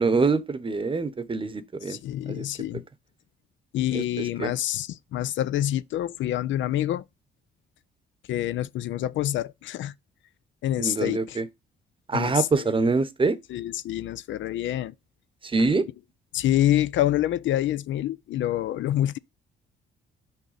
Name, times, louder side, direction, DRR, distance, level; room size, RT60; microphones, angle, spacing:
voice 1, 0.0-2.0 2.3-2.5 3.9-4.5 10.8-11.5 12.1-13.4 15.4-15.8, right 4 dB, 25° right, 0.8 m, -25 dB
voice 2, 1.9-2.8 3.7-7.0 8.3-9.9 10.6-11.4 12.1-12.7 13.5-14.9 16.3-19.2, left 13 dB, 70° left, 0.5 m, -27 dB
6.3 x 4.0 x 5.0 m
cardioid pair, 90°, 20 cm